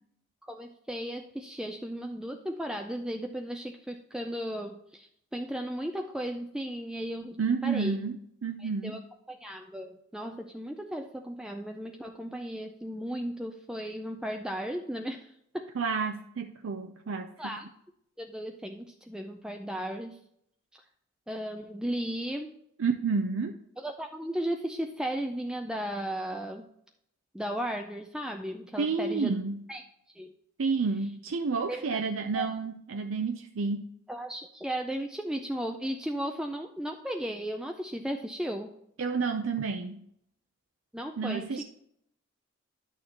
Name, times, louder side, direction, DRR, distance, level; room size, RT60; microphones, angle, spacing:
voice 1, 0.5-8.0 8.6-9.0 9.3-15.7 17.4-17.7 18.2-20.2 21.3-22.6 23.8-26.7 27.3-29.4 29.7-29.8 30.2-30.3 31.7-32.0 32.3-32.5 34.1-38.7 40.9-41.6, equal, 5° right, 4 dB, 0.4 m, -35 dB
voice 2, 7.4-8.2 8.4-9.0 15.8-17.6 22.8-23.6 28.8-29.7 30.6-33.9 39.0-40.1 41.2-41.6, right 4 dB, 70° right, 5 dB, 0.5 m, -30 dB
10.5 x 6.4 x 2.9 m, 0.73 s
head